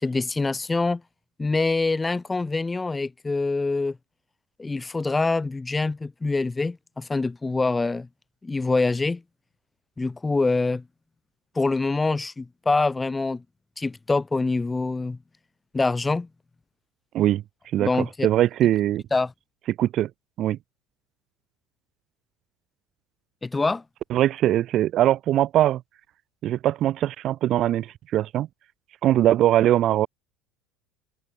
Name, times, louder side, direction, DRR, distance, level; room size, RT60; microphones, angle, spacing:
voice 1, 0.0-1.0 1.4-4.0 4.6-8.1 8.4-9.2 10.0-10.8 11.5-13.4 13.8-15.2 15.7-16.3 17.8-18.3 19.1-19.3 23.4-23.8, left 3 dB, 10° left, 6.1 m, -25 dB
voice 2, 17.7-19.0 19.8-20.1 20.4-20.6 24.1-25.8 26.4-28.5 29.0-30.1, right 12 dB, 35° right, 3.9 m, -21 dB
cardioid pair, 175°, 0 cm